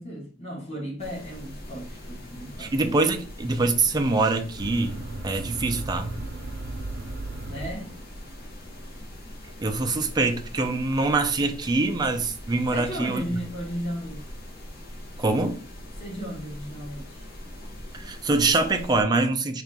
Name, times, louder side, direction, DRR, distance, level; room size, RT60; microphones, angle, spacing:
voice 1, 0.0-2.7 7.4-7.9 12.7-14.2 16.0-17.2, equal, 35° left, 1.3 m, -35 dB
sound 1, 1.0-19.0, left 1 dB, 55° left, 1.1 m, -42 dB
voice 2, 2.6-6.1 9.6-13.4 15.2-15.6 17.9-19.6, right 3 dB, 20° right, 0.4 m, -24 dB
sound 2, 4.6-8.3, right 2 dB, 70° right, 0.6 m, -36 dB
3.9 x 2.5 x 3.4 m
head